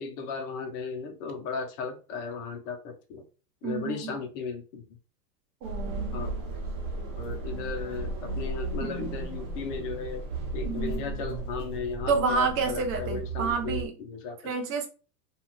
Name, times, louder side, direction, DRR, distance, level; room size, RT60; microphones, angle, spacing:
voice 1, 0.0-3.2 3.6-4.8 6.1-6.3 7.2-10.2 10.5-14.5, left 5 dB, 45° left, 4 dB, 1.0 m, -36 dB
voice 2, 3.6-4.2 5.6-6.2 8.8-9.1 10.6-11.2 12.1-13.9 14.4-14.9, right 5 dB, 25° right, 5 dB, 0.6 m, -29 dB
sound 1, 5.6-13.9, right 2 dB, 40° right, 1.2 m, -35 dB
2.7 x 2.5 x 3.1 m, 0.35 s
supercardioid pair, 140°, 49 cm